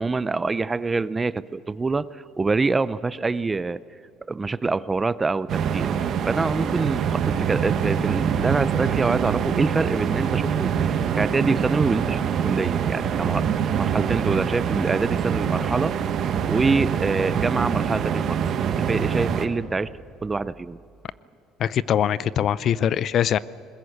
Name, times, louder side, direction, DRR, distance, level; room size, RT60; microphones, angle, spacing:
voice 1, 0.0-3.8 4.3-13.5 13.7-16.0 16.5-19.9 20.2-20.8, right 3 dB, 15° right, 17 dB, 0.4 m, -25 dB
sound 1, 5.5-19.5, right 8 dB, 45° right, 1.4 m, -24 dB
voice 2, 21.6-23.4, left 9 dB, 45° left, 19 dB, 0.5 m, -22 dB
21.0 x 20.5 x 8.4 m, 2.7 s
cardioid pair, 150°, 0 cm